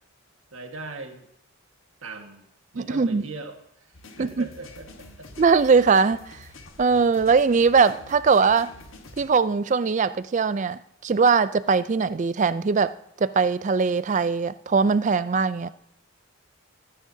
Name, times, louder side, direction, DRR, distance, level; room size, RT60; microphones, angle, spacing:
voice 1, 0.5-1.3 2.0-2.5 2.7-5.3, right 3 dB, 70° right, 1.6 m, -40 dB
voice 2, 2.8-3.2 4.2-4.5 5.4-6.4 6.8-8.7 9.2-12.9 13.2-15.7, right 5 dB, 35° right, 0.3 m, -21 dB
sound 1, 3.9-9.3, left 2 dB, 65° left, 1.3 m, -47 dB
20.5 x 9.9 x 2.7 m
head